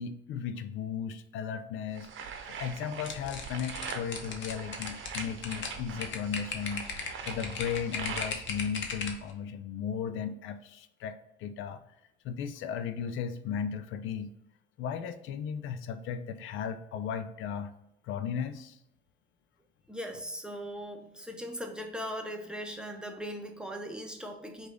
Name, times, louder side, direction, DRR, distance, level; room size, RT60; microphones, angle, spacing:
voice 1, 0.0-2.1 2.5-6.9 7.3-11.8 12.2-14.3 14.8-17.7 18.0-18.8, left 7 dB, 85° left, 11 dB, 0.4 m, -36 dB
sound 1, 2.0-8.7, right 6 dB, 80° right, 0.7 m, -42 dB
sound 2, 3.0-9.3, left 5 dB, 70° left, 0.8 m, -37 dB
voice 2, 19.9-24.7, equal, 5° right, 3 dB, 0.7 m, -39 dB
5.0 x 2.4 x 3.5 m, 0.82 s
cardioid pair, 90°, 20 cm